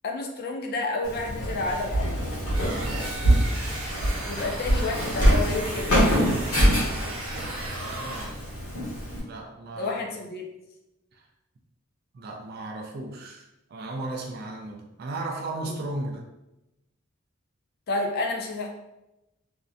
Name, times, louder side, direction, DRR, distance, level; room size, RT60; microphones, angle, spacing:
voice 1, 0.0-2.2 4.2-6.3 9.8-10.5 15.7-15.8 17.9-18.7, left 2 dB, 45° left, 2 dB, 0.4 m, -30 dB
Walk footsteps, 1.0-9.2, equal, 85° left, 1.1 m, -25 dB
sound 1, 2.5-8.3, right 2 dB, 75° right, 0.8 m, -37 dB
voice 2, 2.6-3.0 7.8-8.4 9.2-10.1 11.1-11.2 12.1-16.2, right 2 dB, 45° right, 1 dB, 0.3 m, -36 dB
2.5 x 2.0 x 2.5 m, 0.93 s
head